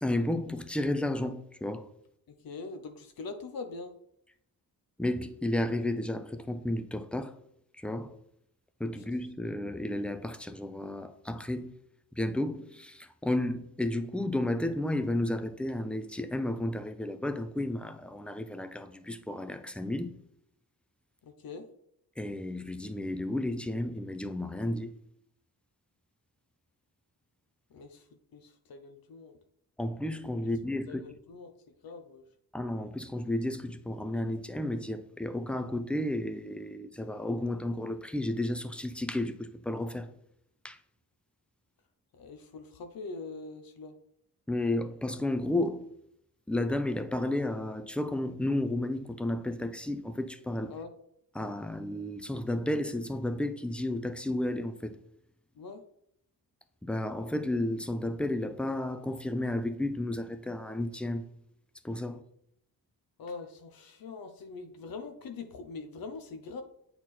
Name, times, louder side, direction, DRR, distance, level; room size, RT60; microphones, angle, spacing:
voice 1, 0.0-1.9 5.0-7.4 7.8-8.2 8.8-11.7 12.1-20.2 22.2-24.9 29.8-31.1 32.5-40.1 40.6-40.8 44.5-45.9 46.5-50.8 51.3-55.0 56.8-61.3 61.8-62.2, left 1 dB, 5° left, 0.4 m, -32 dB
voice 2, 2.4-3.9 21.4-21.6 27.7-28.0 28.3-29.4 30.4-30.5 30.9-31.5 31.8-32.2 42.2-43.9 50.7-50.9 55.6-55.8 63.2-66.6, left 4 dB, 65° left, 0.9 m, -43 dB
8.9 x 4.3 x 4.2 m
wide cardioid pair, 150°, 38 cm